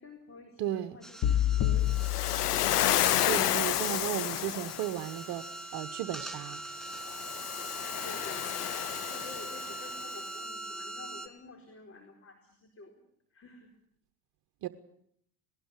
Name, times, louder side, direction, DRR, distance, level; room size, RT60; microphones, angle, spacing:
voice 1, 0.0-2.3 7.8-8.6 9.0-13.7, left 3 dB, 30° left, 4 dB, 4.5 m, -50 dB
voice 2, 0.6-0.9 3.2-5.4 5.7-6.6 14.6-14.7, right 12 dB, 55° right, 9 dB, 1.3 m, -34 dB
sound 1, 1.0-11.3, right 2 dB, ahead, 2.5 m, -42 dB
sound 2, 1.2-3.3, left 12 dB, 45° left, 1.9 m, -29 dB
Waves surf, 1.9-5.1 6.9-10.0, left 13 dB, 85° left, 0.9 m, -30 dB
19.5 x 19.0 x 9.7 m, 0.69 s
hypercardioid pair, 70°, 46 cm